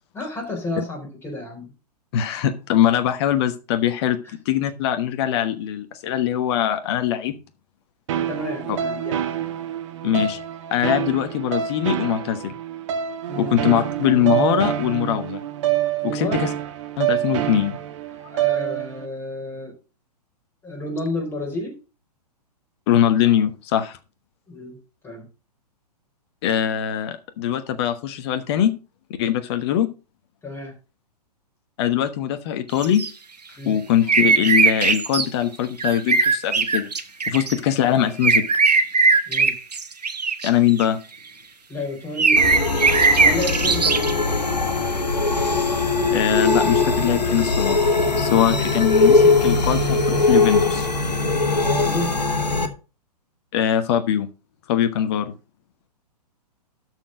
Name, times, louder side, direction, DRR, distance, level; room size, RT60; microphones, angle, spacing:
voice 1, 0.1-1.7 4.2-4.3 8.1-9.2 13.3-13.5 16.0-16.4 18.3-19.7 20.6-21.7 24.5-24.8 25.0-25.3 30.4-30.7 33.6-33.8 39.3-39.5 41.7-42.4 43.2-44.4 51.6-52.3, left 2 dB, 10° left, -1 dB, 4.4 m, -31 dB
voice 2, 2.1-4.2 4.4-7.4 8.7-8.8 10.0-10.4 10.7-12.5 13.4-15.4 16.1-16.5 17.0-17.8 22.9-24.0 26.4-28.7 29.2-29.9 31.8-33.0 33.7-36.9 37.3-38.4 40.4-41.0 46.1-47.9 48.2-50.9 53.5-54.3 54.7-55.3, left 10 dB, 40° left, 9 dB, 1.2 m, -22 dB
sound 1, 8.1-19.1, right 11 dB, 45° right, 1.3 m, -26 dB
sound 2, 32.8-33.1 34.1-35.3 35.8-37.6 38.2-40.8 42.2-44.1, right 4 dB, 75° right, 1.4 m, -19 dB
sound 3, 42.4-52.7, left 3 dB, 85° left, 1.6 m, -20 dB
13.0 x 4.7 x 5.1 m, 0.32 s
figure-of-eight pair, 115°, 21 cm